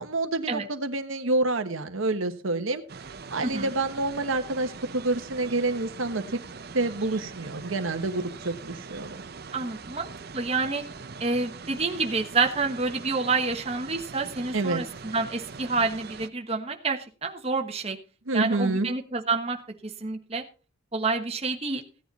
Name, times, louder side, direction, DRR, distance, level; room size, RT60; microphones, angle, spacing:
voice 1, 0.0-2.8 3.3-6.4 6.7-9.2 14.5-14.8 18.3-18.9, right 2 dB, 80° right, 7 dB, 1.2 m, -28 dB
sound 1, 2.9-16.3, right 4 dB, 50° right, 0.7 m, -42 dB
voice 2, 9.5-10.8 11.2-18.0 18.3-19.6 19.8-20.4 20.9-21.8, right 4 dB, 30° right, 3 dB, 1.3 m, -28 dB
16.0 x 9.5 x 4.1 m, 0.37 s
head